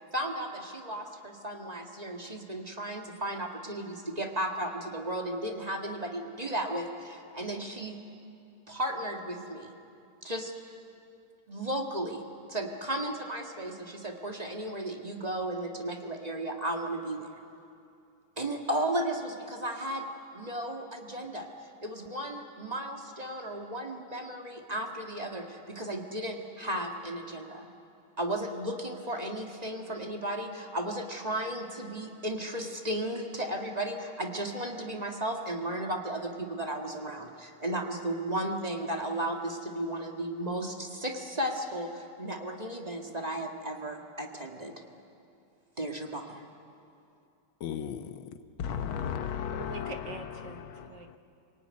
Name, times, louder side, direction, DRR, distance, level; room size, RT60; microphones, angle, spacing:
voice 1, 0.1-8.0 8.7-9.7 10.2-10.5 11.5-12.2 12.5-17.4 18.4-20.1 20.3-27.7 28.2-44.7 45.8-46.4, right 1 dB, 20° right, 2 dB, 1.7 m, -34 dB
voice 2, 47.6-48.2 48.6-50.0 50.4-50.9, left 8 dB, 75° left, 9 dB, 1.7 m, -35 dB
voice 3, 49.5-51.2, right 4 dB, 60° right, 6 dB, 1.9 m, -44 dB
27.5 x 19.0 x 9.6 m, 2.6 s
omnidirectional pair, 2.3 m